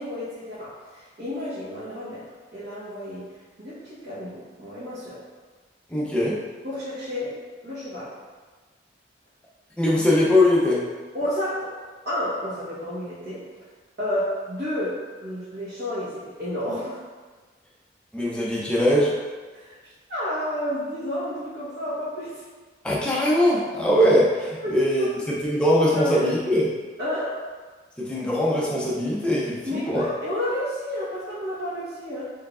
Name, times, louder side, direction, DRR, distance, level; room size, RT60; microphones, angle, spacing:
voice 1, 0.0-2.2 2.5-3.2 3.6-5.2 6.6-7.4 7.6-8.1 11.1-11.8 12.0-13.4 14.0-17.0 18.2-18.3 19.5-19.7 20.1-22.4 24.6-25.3 25.9-26.2 27.0-27.4 29.6-32.3, left 1 dB, 60° right, -12 dB, 1.1 m, -31 dB
voice 2, 5.9-6.4 9.8-10.8 18.1-19.1 22.8-26.7 28.0-30.0, left 1 dB, 5° left, -6 dB, 0.5 m, -21 dB
4.4 x 3.2 x 2.4 m, 1.4 s
head